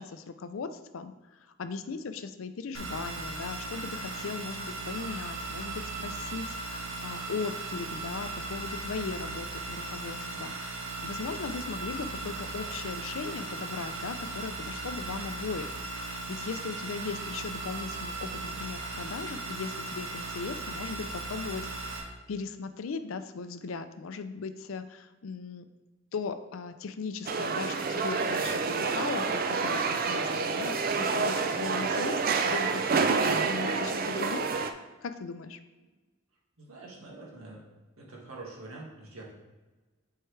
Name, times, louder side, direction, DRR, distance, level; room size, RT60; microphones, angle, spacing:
voice 1, 0.0-15.8 16.1-22.0 22.3-25.7 26.1-33.2 33.5-34.5 35.0-35.6, left 5 dB, 70° left, 10 dB, 0.4 m, -38 dB
sound 1, 2.7-22.0, right 3 dB, 70° right, 1.6 m, -37 dB
sound 2, 27.3-34.7, right 4 dB, 45° right, 0.4 m, -28 dB
voice 2, 36.6-37.6 38.0-39.3, right 2 dB, 90° right, -4 dB, 1.8 m, -45 dB
7.8 x 4.6 x 3.2 m, 1.2 s
head